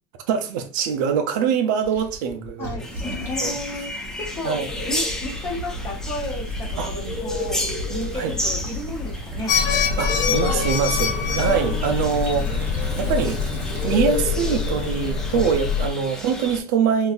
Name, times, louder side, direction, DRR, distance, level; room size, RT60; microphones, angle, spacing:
voice 1, 0.3-2.8 3.4-3.6 4.4-4.7 6.8-6.9 8.2-8.3 10.0-17.1, right 7 dB, 65° right, 0.5 m, -24 dB
Gurgling / Liquid, 1.8-14.4, equal, 15° right, 0.9 m, -34 dB
voice 2, 2.6-3.9 4.2-9.5 10.2-11.1 11.5-12.0 12.4-13.3, left 1 dB, 20° left, 1.1 m, -34 dB
sound 1, 2.8-16.6, left 2 dB, 5° left, 0.4 m, -31 dB
sound 2, 9.5-15.9, left 6 dB, 65° left, 0.5 m, -25 dB
3.9 x 2.6 x 2.5 m
supercardioid pair, 165°, 11 cm